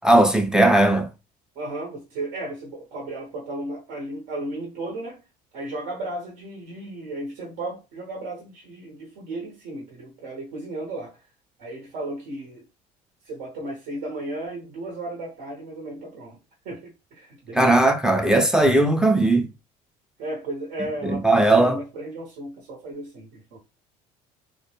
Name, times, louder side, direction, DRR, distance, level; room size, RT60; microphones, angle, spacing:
voice 1, 0.0-1.1 17.5-19.5 21.0-21.8, right 2 dB, 5° right, 0.3 m, -18 dB
voice 2, 1.6-5.2 5.5-11.2 11.6-12.6 13.2-16.4 16.6-17.9 20.2-23.6, right 1 dB, 80° right, 0.8 m, -34 dB
2.1 x 2.1 x 2.9 m
cardioid pair, 105°, 16 cm